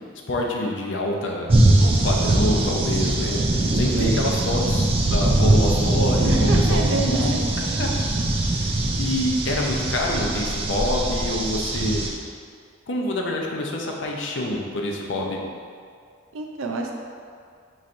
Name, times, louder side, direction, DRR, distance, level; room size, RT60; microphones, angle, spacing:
voice 1, 0.3-1.5 1.8-3.4 3.7-7.5 7.8-7.9 8.6-12.0 12.9-15.4, left 1 dB, 70° left, -1 dB, 0.5 m, -26 dB
sound 1, 1.5-12.1, right 2 dB, 30° right, 0.3 m, -21 dB
voice 2, 3.9-4.4 6.2-7.8 16.3-16.9, right 2 dB, 85° right, 2 dB, 0.5 m, -28 dB
5.6 x 3.1 x 2.5 m, 2.2 s
head